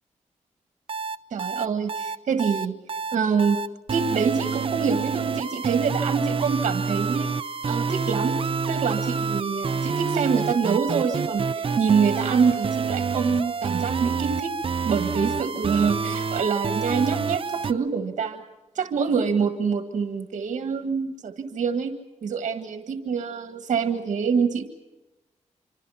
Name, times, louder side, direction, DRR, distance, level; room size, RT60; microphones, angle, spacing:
sound 1, 0.9-17.7, right 5 dB, 45° right, 0.8 m, -27 dB
voice 1, 1.3-2.7 3.1-3.6 3.9-7.3 7.7-8.4 8.7-14.5 14.8-18.4 18.7-21.9 22.2-24.7, right 6 dB, 75° right, 6 dB, 1.7 m, -25 dB
26.0 x 25.5 x 5.7 m, 1.0 s
cardioid pair, 80°, 12 cm